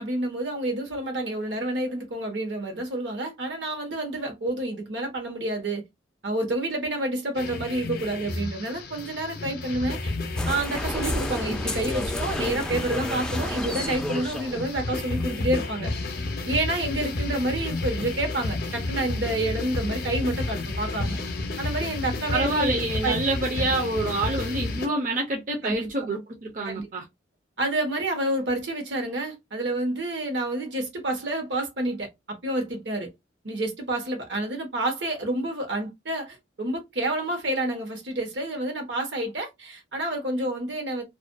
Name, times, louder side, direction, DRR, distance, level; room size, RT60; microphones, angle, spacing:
voice 1, 0.0-5.8 6.2-10.1 10.4-15.9 16.5-21.2 21.6-23.1 23.6-23.7 25.6-25.9 26.6-26.9 27.6-33.1 33.4-41.0, right 1 dB, 75° right, 1.0 m, -29 dB
sound 1, 7.3-24.9, left 2 dB, 55° left, 0.5 m, -32 dB
sound 2, 10.4-15.4, left 1 dB, 5° left, 0.3 m, -31 dB
voice 2, 22.3-27.0, right 2 dB, 45° right, 0.5 m, -27 dB
2.4 x 2.2 x 2.5 m
head